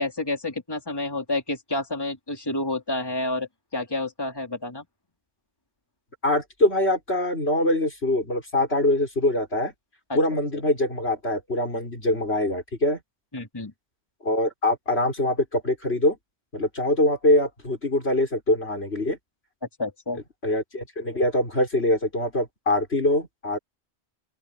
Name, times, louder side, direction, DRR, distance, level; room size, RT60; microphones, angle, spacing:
voice 1, 0.0-4.8 10.1-10.2 13.3-13.7 19.8-20.2, left 2 dB, 20° left, 3.1 m, -29 dB
voice 2, 6.2-9.7 10.1-13.0 14.2-16.2 16.5-19.2 20.4-23.6, left 1 dB, 70° left, 6.6 m, -23 dB
open air
omnidirectional pair, 1.1 m